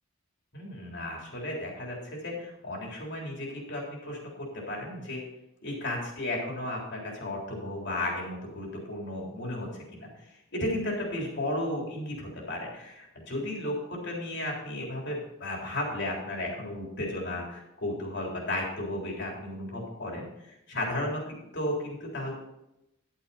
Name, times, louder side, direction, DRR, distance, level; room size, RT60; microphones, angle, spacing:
voice 1, 0.5-5.2 5.6-22.3, left 1 dB, 50° left, -1 dB, 3.6 m, -34 dB
11.5 x 9.0 x 4.2 m, 0.87 s
head